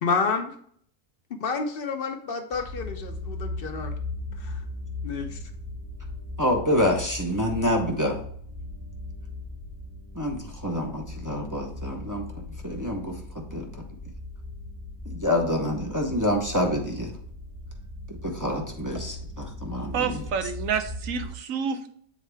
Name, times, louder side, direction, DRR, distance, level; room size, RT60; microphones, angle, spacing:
voice 1, 0.0-0.5 1.3-3.9 4.4-4.6 5.0-5.4, left 5 dB, 45° left, 0.9 m, -29 dB
sound 1, 2.5-21.3, left 2 dB, 10° left, 0.7 m, -38 dB
voice 2, 6.4-8.2 10.1-12.2 12.6-13.8 15.1-17.1 18.1-20.2, left 1 dB, 20° right, 0.6 m, -27 dB
voice 3, 19.9-21.9, right 6 dB, 70° right, 1.0 m, -29 dB
7.4 x 4.2 x 3.4 m
omnidirectional pair, 1.6 m